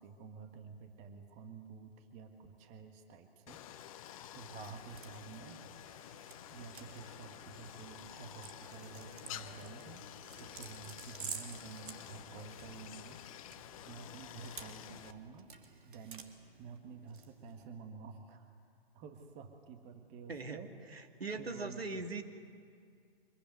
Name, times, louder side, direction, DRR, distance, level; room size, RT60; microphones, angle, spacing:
voice 1, 0.0-3.6 4.3-5.6 6.5-10.0 10.4-13.2 13.9-15.5 15.8-16.3 16.6-18.5 18.9-20.7 21.4-22.0, right 5 dB, 25° right, 6 dB, 1.9 m, -50 dB
Stream, 3.5-15.1, left 11 dB, 35° left, 1.0 m, -50 dB
sound 1, 4.3-17.7, right 6 dB, 55° right, 2.9 m, -52 dB
voice 2, 20.9-22.2, right 3 dB, 75° right, 5 dB, 2.6 m, -41 dB
25.5 x 22.5 x 9.4 m, 2.2 s
figure-of-eight pair, 130°, 31 cm